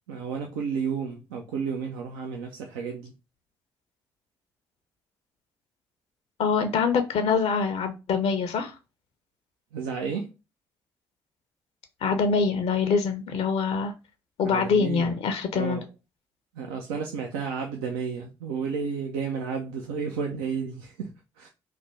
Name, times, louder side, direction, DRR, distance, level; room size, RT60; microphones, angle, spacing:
voice 1, 0.1-3.1 9.7-10.3 14.4-15.2 15.5-15.9 16.5-21.5, right 6 dB, 85° right, 0.4 m, -32 dB
voice 2, 6.4-8.7 12.0-13.9 14.4-15.8, left 5 dB, 65° left, 0.5 m, -24 dB
3.3 x 2.0 x 3.1 m
hypercardioid pair, 45°, 11 cm